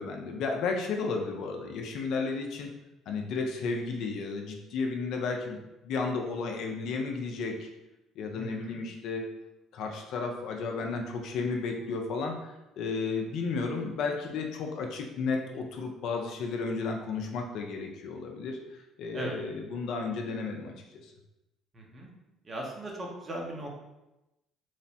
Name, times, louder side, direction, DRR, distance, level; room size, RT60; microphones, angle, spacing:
voice 1, 0.0-2.7 3.1-7.7 8.2-9.3 9.7-20.7 21.0-21.1, left 4 dB, 70° left, 2 dB, 0.4 m, -33 dB
voice 2, 8.3-8.8 19.1-19.4 21.7-22.1 22.4-23.8, right 1 dB, 35° right, -1 dB, 0.8 m, -38 dB
3.1 x 2.0 x 2.7 m, 0.96 s
supercardioid pair, 70°, 0 cm